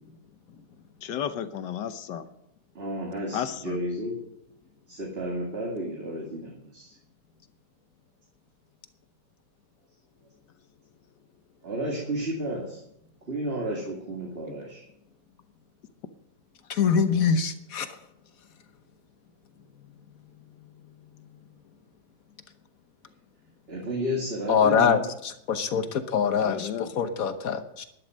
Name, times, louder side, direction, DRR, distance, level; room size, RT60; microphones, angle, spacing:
voice 1, 1.0-2.3 3.3-3.8 26.4-26.9, left 9 dB, 80° left, 11 dB, 1.6 m, -33 dB
voice 2, 2.8-4.2 4.9-6.9 11.6-12.8 13.3-14.8 23.7-25.0, right 1 dB, 35° right, -2 dB, 2.4 m, -32 dB
voice 3, 16.7-17.9 24.5-27.9, left 6 dB, 55° left, 9 dB, 1.4 m, -24 dB
12.0 x 11.0 x 6.4 m, 0.80 s
omnidirectional pair, 1.9 m